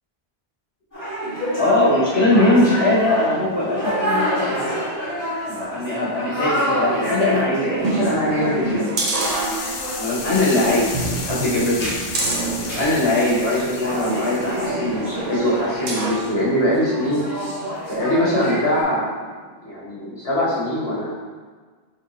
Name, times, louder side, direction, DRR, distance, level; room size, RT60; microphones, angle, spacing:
sound 1, 0.9-18.8, equal, 20° left, 1.6 m, -29 dB
voice 1, 1.6-4.7 5.4-8.9 10.0-11.9 12.7-17.2 17.9-19.1 19.6-21.1, left 1 dB, 85° left, -7 dB, 1.7 m, -21 dB
sound 2, 7.8-10.0 10.4-10.6 10.9-13.4 14.1-16.3 16.7-16.8, right 2 dB, 45° right, 0.7 m, -27 dB
sound 3, 9.2-14.7, left 4 dB, 60° left, 0.7 m, -33 dB
4.9 x 3.7 x 2.8 m, 1.4 s
omnidirectional pair, 1.0 m